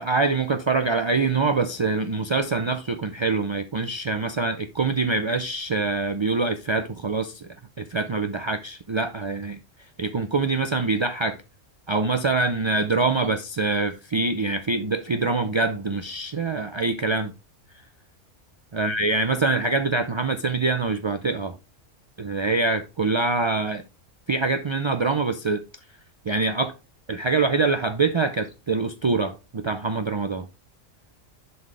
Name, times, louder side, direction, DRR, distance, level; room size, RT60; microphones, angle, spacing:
voice 1, 0.0-9.6 10.0-11.4 11.9-17.3 18.7-21.6 22.2-23.8 24.3-25.6 26.3-26.7 27.1-30.5, right 3 dB, 45° right, 0.3 m, -24 dB
11.0 x 4.0 x 3.3 m
omnidirectional pair, 1.3 m